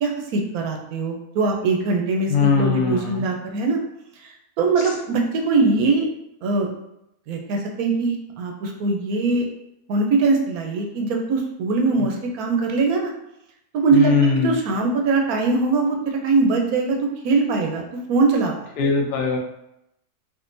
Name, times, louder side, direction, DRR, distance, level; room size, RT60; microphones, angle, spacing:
voice 1, 0.0-3.8 4.2-6.1 6.4-6.7 7.3-9.5 9.9-13.1 13.7-14.2 14.4-17.0 17.2-18.5, right 3 dB, 75° right, 2 dB, 1.0 m, -21 dB
voice 2, 2.3-3.3 4.8-4.9 13.9-14.6 18.8-19.4, left 4 dB, 85° left, 0 dB, 0.4 m, -20 dB
3.6 x 2.5 x 2.5 m, 0.82 s
omnidirectional pair, 1.6 m